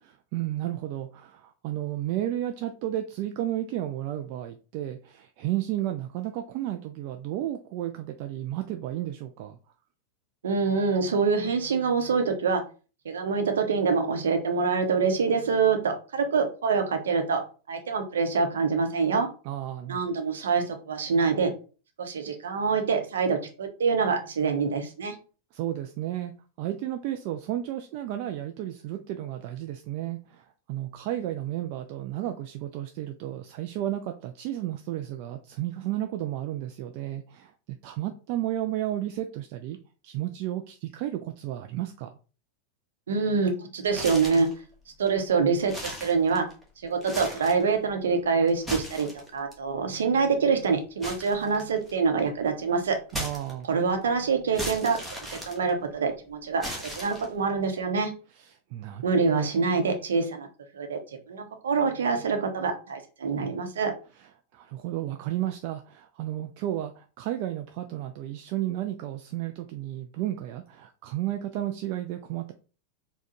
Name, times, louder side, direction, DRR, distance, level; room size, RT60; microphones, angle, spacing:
voice 1, 0.3-9.6 19.4-20.0 25.5-26.3 26.6-39.8 40.0-42.2 53.1-53.7 58.3-59.5 64.2-72.5, right 13 dB, 45° right, 6 dB, 0.3 m, -33 dB
voice 2, 10.4-12.6 13.0-17.4 17.7-19.3 19.9-21.5 22.0-25.1 43.1-44.5 45.0-46.5 46.8-53.0 53.7-55.0 55.3-58.1 59.0-60.5 60.7-61.0 61.3-63.9, right 5 dB, 65° right, 5 dB, 0.7 m, -25 dB
sound 1, 43.9-44.6 45.1-45.2 45.6-46.6 47.0-47.7 48.5-49.5 51.0-52.0 53.1-53.9 54.5-56.1 56.6-57.5, equal, ahead, 1.2 m, -37 dB
4.3 x 2.2 x 2.9 m, 0.35 s
figure-of-eight pair, 90°, 0 cm